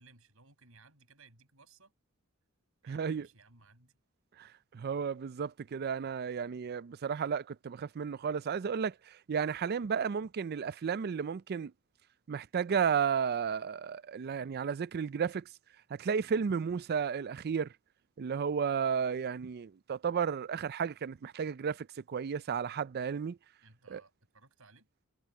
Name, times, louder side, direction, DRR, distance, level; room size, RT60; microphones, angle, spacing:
voice 1, 0.0-1.9 2.8-4.0 23.6-24.9, right 3 dB, 70° right, 7.6 m, -60 dB
voice 2, 2.9-3.3 4.4-11.7 12.3-15.4 15.9-17.7 18.2-23.4 23.9-24.0, right 6 dB, 50° right, 0.4 m, -33 dB
head